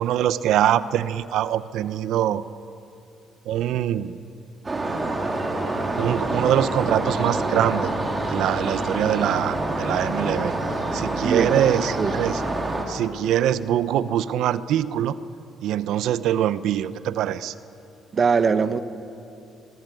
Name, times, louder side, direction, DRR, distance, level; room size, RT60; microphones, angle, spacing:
voice 1, 0.0-2.4 3.5-4.2 6.0-7.9 8.3-10.6 10.9-12.4 12.9-15.2 15.6-17.5, right 11 dB, 80° right, 14 dB, 0.9 m, -23 dB
sound 1, 4.6-12.8, right 2 dB, 20° right, 3.7 m, -26 dB
voice 2, 11.2-11.7 12.0-12.1 18.1-18.8, right 5 dB, 35° right, 11 dB, 1.2 m, -21 dB
28.0 x 21.0 x 9.3 m, 2.7 s
cardioid pair, 135°, 0 cm